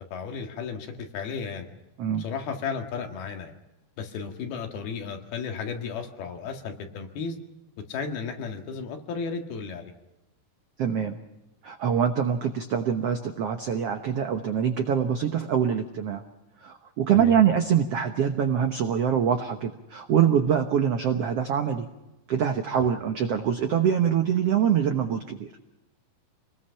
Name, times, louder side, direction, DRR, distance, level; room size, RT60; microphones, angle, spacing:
voice 1, 0.0-1.7 2.2-3.5 4.0-7.4 7.9-9.9 17.1-17.4 22.8-22.9, left 5 dB, 75° left, 4 dB, 3.8 m, -34 dB
voice 2, 10.8-11.2 11.6-16.2 16.6-21.9 22.3-25.5, right 8 dB, 80° right, 6 dB, 1.3 m, -24 dB
27.0 x 20.5 x 5.8 m, 0.99 s
omnidirectional pair, 4.5 m